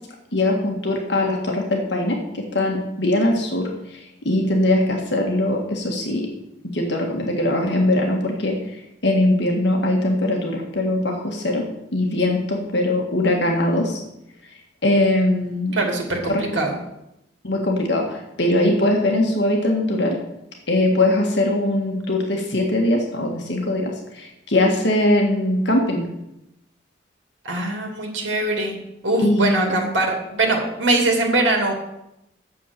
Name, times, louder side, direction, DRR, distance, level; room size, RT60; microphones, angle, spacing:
voice 1, 0.3-6.3 6.6-8.6 9.0-11.6 11.9-14.0 14.8-15.8 16.3-16.5 17.4-20.2 20.7-26.1 29.2-29.7, left 1 dB, 65° left, 1 dB, 1.8 m, -21 dB
voice 2, 15.7-16.8 27.4-28.8 29.0-31.7, right 2 dB, 80° right, 2 dB, 2.6 m, -22 dB
8.9 x 7.1 x 6.9 m, 0.85 s
head